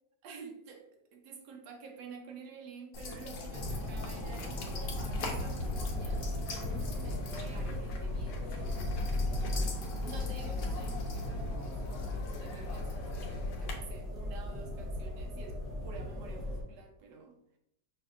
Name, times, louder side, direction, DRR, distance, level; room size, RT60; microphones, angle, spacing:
voice 1, 0.2-8.6 9.3-9.7 10.0-17.3, right 5 dB, 75° right, 3 dB, 1.3 m, -50 dB
sound 1, 2.9-13.7, left 2 dB, 85° left, 1.4 m, -38 dB
sound 2, 3.5-16.6, left 1 dB, ahead, 0.6 m, -38 dB
6.0 x 2.5 x 2.5 m, 0.77 s
omnidirectional pair, 1.8 m